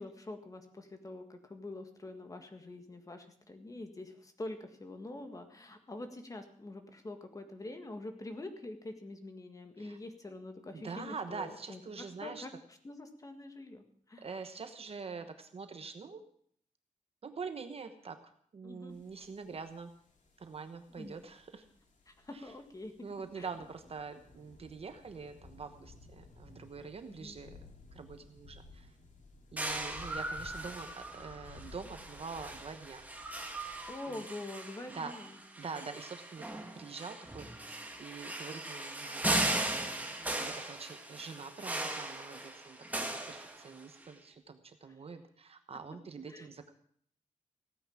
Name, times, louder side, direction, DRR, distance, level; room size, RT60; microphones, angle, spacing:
voice 1, 0.0-11.8 12.2-14.3 18.6-18.9 20.9-21.2 22.1-22.9 23.4-23.5 27.1-27.4 33.9-35.4 44.8-44.9 46.3-46.5, left 2 dB, 25° left, 6 dB, 1.7 m, -45 dB
voice 2, 10.7-12.5 14.2-16.2 17.2-18.2 18.5-19.9 20.4-21.6 22.3-22.5 23.0-27.6 27.9-28.9 29.5-33.0 34.1-34.3 34.9-35.1 35.6-39.5 39.7-46.7, right 5 dB, 50° right, 8 dB, 1.1 m, -45 dB
sound 1, 18.9-34.0, left 3 dB, 65° left, 2.6 m, -56 dB
sound 2, 29.6-44.0, right 1 dB, 10° right, 1.6 m, -38 dB
16.0 x 9.5 x 7.2 m, 0.63 s
wide cardioid pair, 170°, 13 cm